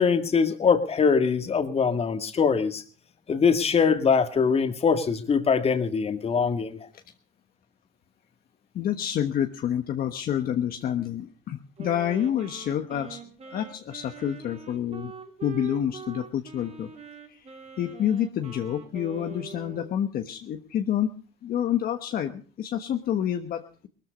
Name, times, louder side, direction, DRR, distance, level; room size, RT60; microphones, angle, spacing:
voice 1, 0.0-2.8 3.3-6.8, left 6 dB, 35° left, 8 dB, 2.0 m, -22 dB
voice 2, 8.7-13.2 13.5-15.1 15.4-16.9 17.3-17.4 17.8-21.1 21.4-23.6, left 10 dB, 60° left, 6 dB, 1.3 m, -28 dB
Wind instrument woodwind instrument, 11.8-20.0, right 5 dB, 40° right, 3.3 m, -43 dB
19.5 x 13.5 x 5.2 m, 0.40 s
cardioid pair, 110°, 17 cm